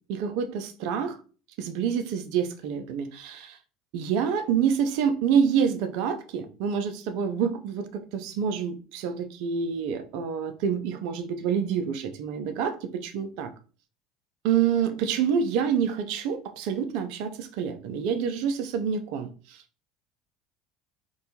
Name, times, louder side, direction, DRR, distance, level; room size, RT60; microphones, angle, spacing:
voice 1, 0.1-1.2 1.6-3.6 3.9-13.5 14.4-19.6, right 7 dB, 65° right, 0.4 m, -27 dB
2.6 x 2.2 x 2.7 m
hypercardioid pair, 70°, 0 cm